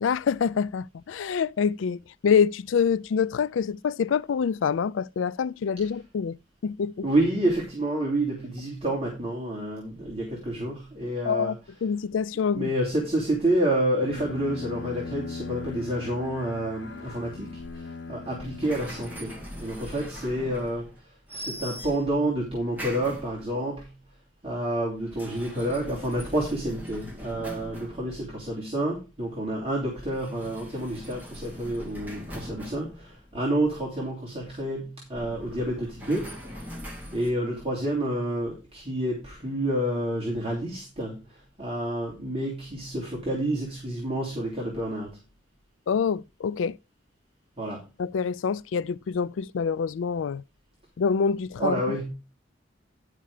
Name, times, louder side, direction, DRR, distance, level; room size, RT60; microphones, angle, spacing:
voice 1, 0.0-6.4 6.6-7.1 11.2-11.6 11.8-12.7 45.9-46.8 48.0-50.4 51.0-51.8, left 6 dB, 85° left, 0.4 m, -26 dB
voice 2, 7.0-11.6 12.5-20.9 21.3-23.9 24.4-36.3 37.1-41.2 41.6-45.1 47.6-47.8 51.6-52.1, right 1 dB, 30° right, 2.9 m, -29 dB
Bowed string instrument, 14.0-19.8, left 4 dB, 65° left, 1.1 m, -39 dB
sound 1, 18.6-21.0 21.3-22.2 22.7-23.7 24.9-28.6 30.0-34.0 35.1-37.3, equal, 10° right, 2.4 m, -41 dB
11.0 x 5.6 x 4.9 m
head